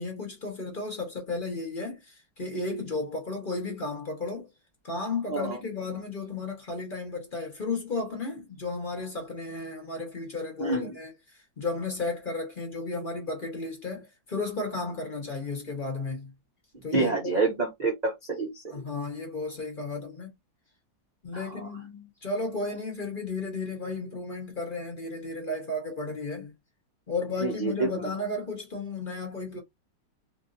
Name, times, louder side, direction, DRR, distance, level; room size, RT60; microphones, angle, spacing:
voice 1, 0.0-4.5 4.8-11.1 11.6-16.3 16.8-17.4 18.7-20.3 21.2-26.5 27.1-29.6, left 3 dB, 30° left, 1.1 m, -34 dB
voice 2, 10.6-10.9 16.9-18.5 21.3-21.7 27.4-27.9, right 3 dB, 75° right, 0.4 m, -27 dB
3.1 x 2.7 x 2.6 m
omnidirectional pair, 2.0 m